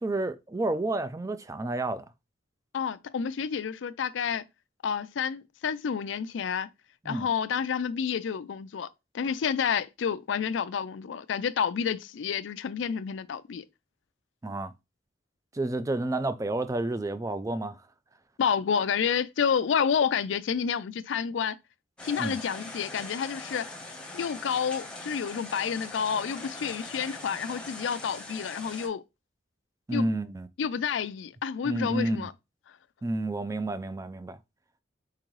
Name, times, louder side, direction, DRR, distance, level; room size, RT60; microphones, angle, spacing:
voice 1, 0.0-2.0 7.0-7.3 14.4-14.7 15.5-17.8 22.2-22.4 29.9-30.5 31.6-32.3 33.0-34.4, right 2 dB, 15° right, 0.4 m, -30 dB
voice 2, 2.7-4.4 4.8-6.7 7.0-8.9 9.1-13.6 18.4-21.6 22.0-23.7 24.1-29.0 29.9-30.1 30.6-32.3, left 7 dB, 90° left, 0.4 m, -29 dB
sound 1, 22.0-28.9, left 2 dB, 5° left, 1.0 m, -42 dB
4.6 x 3.7 x 3.1 m
head